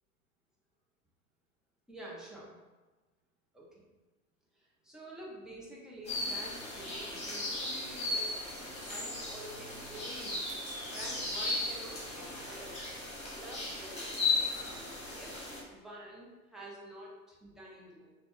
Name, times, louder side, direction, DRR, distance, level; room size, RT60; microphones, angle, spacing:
voice 1, 1.9-2.6 3.5-3.8 4.6-10.5 10.9-12.8 13.3-15.3 15.7-18.1, right 1 dB, ahead, -4 dB, 0.5 m, -49 dB
sound 1, 6.1-15.6, left 2 dB, 15° left, 1.1 m, -36 dB
3.6 x 2.2 x 3.6 m, 1.2 s
figure-of-eight pair, 90°, 43 cm